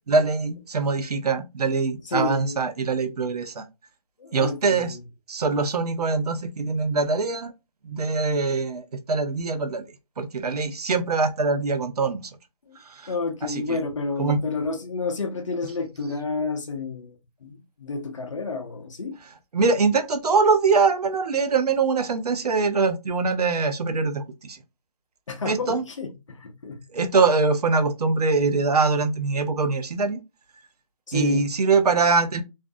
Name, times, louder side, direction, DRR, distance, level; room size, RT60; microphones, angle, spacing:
voice 1, 0.1-3.6 4.3-5.0 5.3-7.5 7.8-9.8 10.2-12.2 12.9-13.1 13.4-13.8 14.2-14.4 19.5-24.6 25.5-25.8 26.9-30.2 31.1-32.4, right 4 dB, 80° right, 0.6 m, -23 dB
voice 2, 2.0-2.6 4.2-5.0 12.7-12.8 13.1-17.1 17.4-19.1 25.3-26.8 31.1-31.5, left 4 dB, 55° left, 0.6 m, -30 dB
2.6 x 2.2 x 2.5 m
hypercardioid pair, 175°, 20 cm